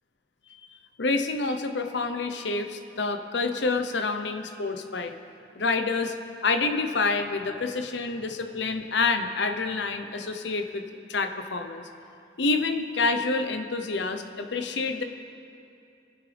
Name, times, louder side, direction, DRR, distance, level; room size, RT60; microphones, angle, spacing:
voice 1, 0.6-5.1 5.6-6.1 6.4-10.8 11.1-11.9 12.4-15.0, left 3 dB, 65° left, 7 dB, 0.8 m, -28 dB
22.5 x 9.9 x 3.4 m, 2.6 s
head